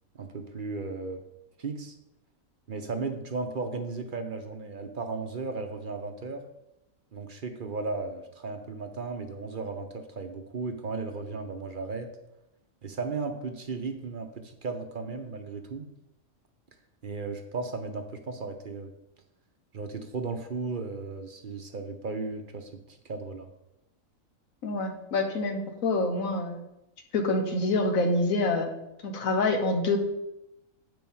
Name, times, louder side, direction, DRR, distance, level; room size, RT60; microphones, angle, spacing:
voice 1, 0.1-1.2 1.6-1.9 2.7-6.4 7.1-12.1 12.8-15.9 17.0-18.9 19.7-23.5, right 4 dB, 50° right, 5 dB, 0.7 m, -35 dB
voice 2, 24.6-26.6 27.1-28.7 29.0-30.0, left 2 dB, 80° left, 4 dB, 1.4 m, -26 dB
7.9 x 4.5 x 5.5 m, 0.88 s
omnidirectional pair, 1.4 m